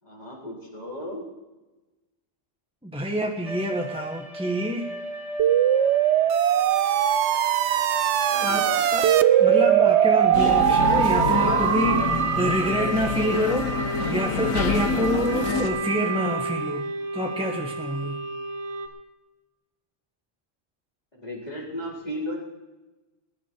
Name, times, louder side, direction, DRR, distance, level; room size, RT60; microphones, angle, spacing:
voice 1, 0.0-1.3 8.3-8.9 21.1-22.4, left 1 dB, 30° left, -4 dB, 4.4 m, -35 dB
voice 2, 2.8-4.9 8.4-9.1 9.4-16.9 17.1-18.2, equal, 5° right, 1 dB, 1.1 m, -27 dB
sound 1, 3.4-18.9, right 2 dB, 30° right, 1.7 m, -33 dB
sound 2, 5.4-12.9, right 10 dB, 65° right, 0.9 m, -21 dB
sound 3, 10.3-15.7, left 5 dB, 80° left, 1.5 m, -27 dB
20.5 x 10.5 x 4.5 m, 1.1 s
omnidirectional pair, 1.3 m